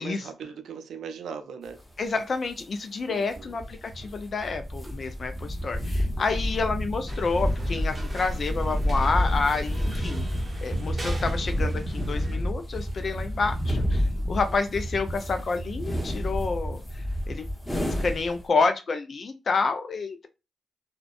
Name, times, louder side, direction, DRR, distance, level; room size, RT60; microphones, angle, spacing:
voice 1, 0.0-1.8 3.1-3.6, right 6 dB, 75° right, 0.4 m, -39 dB
sound 1, 1.8-1.9 2.6-2.7 3.2-18.4, equal, 10° left, 1.1 m, -29 dB
voice 2, 2.0-10.3 10.6-17.5 18.0-20.3, left 4 dB, 55° left, 0.3 m, -29 dB
sound 2, 7.1-12.4, right 1 dB, 35° right, 0.7 m, -42 dB
2.4 x 2.2 x 2.4 m
hypercardioid pair, 45°, 0 cm